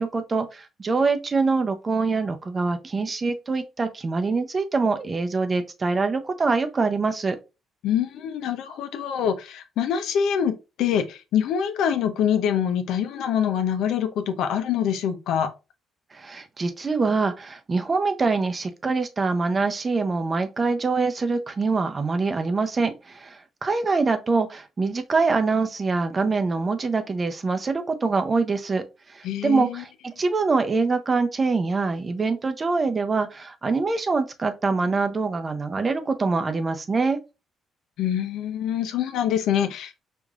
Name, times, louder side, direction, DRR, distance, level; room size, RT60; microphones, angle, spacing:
voice 1, 0.0-7.4 16.1-28.8 29.1-37.2, right 4 dB, 30° right, 0.6 m, -24 dB
voice 2, 7.8-15.5 29.2-29.8 38.0-40.0, left 8 dB, 80° left, 0.5 m, -25 dB
4.8 x 2.5 x 2.4 m
cardioid pair, 95°, 0 cm